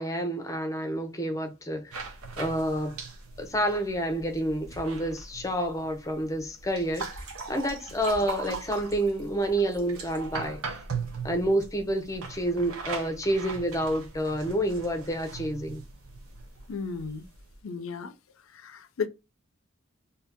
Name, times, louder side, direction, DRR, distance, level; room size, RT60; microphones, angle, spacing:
voice 1, 0.0-2.0 2.4-3.0 3.4-10.6 11.2-15.8, right 1 dB, 15° left, 0.6 m, -29 dB
sound 1, 1.9-17.6, right 4 dB, 80° right, 0.8 m, -40 dB
voice 2, 16.7-17.3 17.6-18.1 18.5-19.1, left 5 dB, 70° left, 0.4 m, -34 dB
2.8 x 2.7 x 3.5 m
head